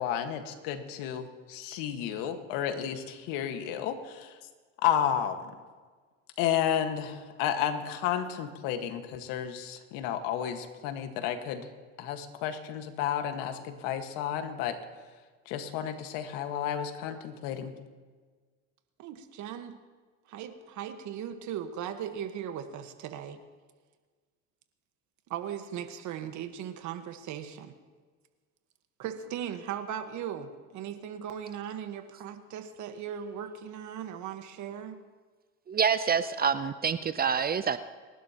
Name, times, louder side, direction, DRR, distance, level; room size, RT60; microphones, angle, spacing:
voice 1, 0.0-4.4 4.8-5.5 6.4-11.7 12.0-14.8 15.4-17.7, left 9 dB, 70° left, 7 dB, 1.7 m, -32 dB
voice 2, 19.0-19.8 20.3-23.4 25.3-27.7 29.0-35.0, right 9 dB, 55° right, 8 dB, 1.4 m, -38 dB
voice 3, 35.7-37.8, right 6 dB, 25° right, 12 dB, 0.6 m, -27 dB
30.0 x 12.0 x 3.0 m, 1.5 s
supercardioid pair, 95°, 35 cm